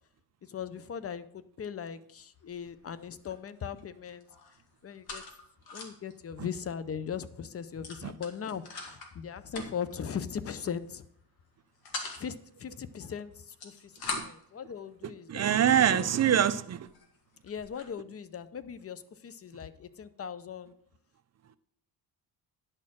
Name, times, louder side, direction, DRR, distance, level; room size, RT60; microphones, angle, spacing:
voice 1, 0.4-4.3 4.8-5.2 5.7-11.0 12.2-15.5 15.9-16.1 17.4-20.7, left 7 dB, 35° left, 0.7 m, -39 dB
sound 1, 2.4-2.7 3.0-3.8 4.1-6.1 6.5-6.6 6.9-7.1 7.8-9.1 9.5-10.0 10.7-11.0 11.4-12.2 13.3-14.5 15.2-15.3 15.9-16.0 16.6-16.7 16.9-17.9, left 4 dB, 65° left, 2.1 m, -41 dB
voice 2, 15.3-16.9, right 9 dB, 40° right, 0.6 m, -24 dB
10.5 x 4.4 x 7.4 m
cardioid pair, 110°, 40 cm